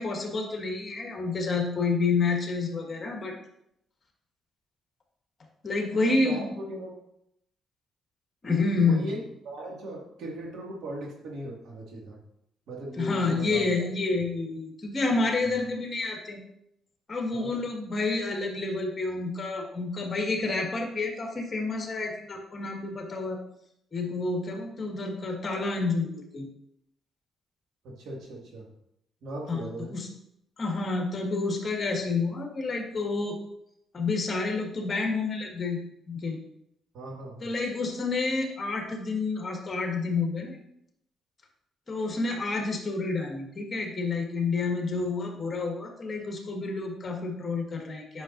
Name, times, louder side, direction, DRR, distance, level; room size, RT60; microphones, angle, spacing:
voice 1, 0.0-3.3 5.6-6.5 8.4-9.2 13.0-16.4 17.1-23.4 23.9-26.5 29.5-30.1 30.6-33.4 33.9-35.8 36.1-36.4 37.4-40.6 41.9-48.2, left 3 dB, 35° left, 1 dB, 1.8 m, -29 dB
voice 2, 5.9-7.0 8.8-12.2 12.7-13.9 15.4-15.6 17.3-17.7 27.8-28.7 29.2-30.0 36.9-37.5, right 1 dB, 75° right, -1 dB, 2.1 m, -38 dB
9.2 x 6.2 x 2.6 m, 0.78 s
cardioid pair, 90°, 0 cm